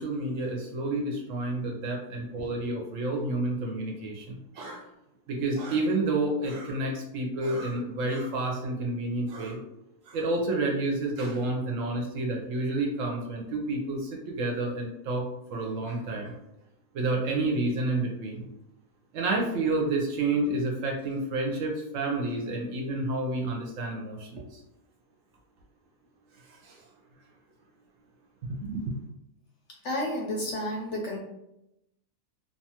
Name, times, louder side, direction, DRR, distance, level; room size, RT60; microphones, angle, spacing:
voice 1, 0.0-4.8 5.3-9.6 10.1-15.2 15.5-16.3 16.9-18.5 19.1-24.4 26.6-26.8 28.5-28.9, right 2 dB, 70° right, 0 dB, 0.9 m, -29 dB
voice 2, 29.8-31.2, left 1 dB, 65° left, -1 dB, 0.8 m, -31 dB
2.8 x 2.3 x 2.8 m, 0.86 s
omnidirectional pair, 1.6 m